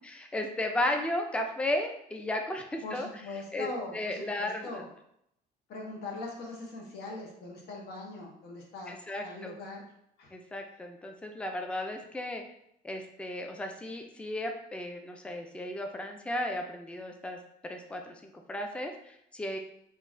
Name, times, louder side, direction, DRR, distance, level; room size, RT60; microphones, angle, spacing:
voice 1, 0.0-3.1 3.5-4.8 8.9-9.6 10.3-12.4 12.8-17.4 17.7-19.6, left 1 dB, 5° left, 3 dB, 0.3 m, -34 dB
voice 2, 2.8-4.9 5.7-8.9 9.2-9.8 10.2-10.3, left 3 dB, 75° left, -1 dB, 0.7 m, -41 dB
2.6 x 2.3 x 3.1 m, 0.75 s
cardioid pair, 110°, 17 cm